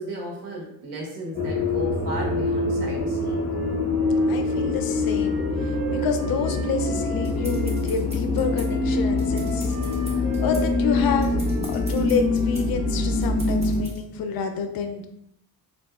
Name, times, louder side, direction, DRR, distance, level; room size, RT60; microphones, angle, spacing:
voice 1, 0.0-3.5, right 1 dB, 85° right, -2 dB, 1.1 m, -34 dB
sound 1, 1.3-13.8, left 3 dB, 25° left, 1.0 m, -24 dB
Wind instrument woodwind instrument, 3.2-7.8 8.4-13.3, right 3 dB, 55° right, 0.9 m, -40 dB
voice 2, 4.3-9.8 10.4-11.4 11.7-15.1, left 5 dB, 60° left, 6 dB, 0.5 m, -28 dB
sound 2, 7.2-14.0, right 1 dB, 15° right, 0.7 m, -44 dB
3.9 x 2.5 x 2.3 m, 0.74 s
cardioid pair, 150°, 41 cm